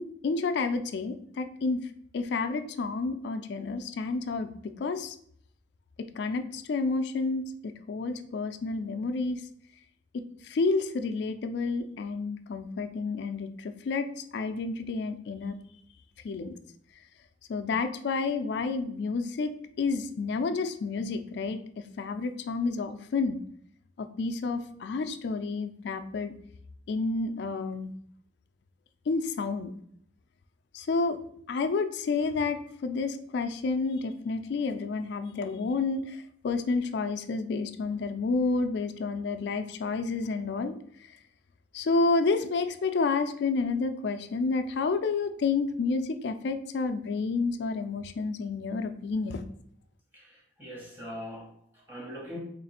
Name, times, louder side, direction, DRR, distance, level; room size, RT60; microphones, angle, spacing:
voice 1, 0.0-1.8 2.1-4.5 4.8-5.1 6.2-9.4 10.1-15.6 16.2-16.5 17.5-19.5 19.8-21.6 22.0-23.4 24.0-26.3 26.9-27.9 29.1-29.7 30.7-31.2 31.5-36.2 36.4-40.8 41.7-49.4, left 4 dB, 60° left, 8 dB, 0.3 m, -30 dB
voice 2, 50.1-52.4, equal, 10° right, -3 dB, 1.0 m, -42 dB
3.3 x 2.4 x 4.1 m, 0.66 s
head